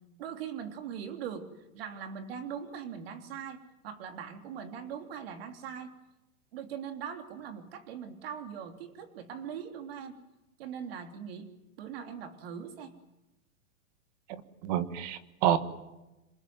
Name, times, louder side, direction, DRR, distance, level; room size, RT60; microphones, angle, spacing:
voice 1, 0.2-1.5 1.7-3.6 3.8-5.9 6.5-10.1 10.6-11.5 11.8-12.9, right 8 dB, 45° right, 6 dB, 3.4 m, -41 dB
voice 2, 14.3-15.6, right 11 dB, 30° right, 12 dB, 1.5 m, -29 dB
27.5 x 21.0 x 9.5 m, 1.0 s
supercardioid pair, 175°, 42 cm